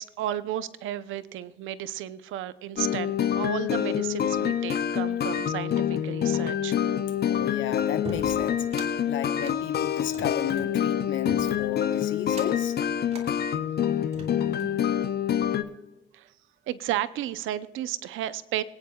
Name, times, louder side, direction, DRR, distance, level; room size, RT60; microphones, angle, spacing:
voice 1, 0.0-6.8 16.1-16.3 16.7-18.6, right 12 dB, 90° right, 0.7 m, -33 dB
sound 1, 2.8-15.6, left 9 dB, 55° left, 0.8 m, -26 dB
voice 2, 7.3-8.7 9.0-12.8, left 10 dB, 70° left, 1.2 m, -33 dB
sound 2, 8.0-8.9 9.3-10.7 11.3-11.8 12.2-12.7 13.1-13.3 13.9-14.8, right 2 dB, 35° right, 3.1 m, -41 dB
25.5 x 9.5 x 2.3 m
cardioid pair, 90°, 20 cm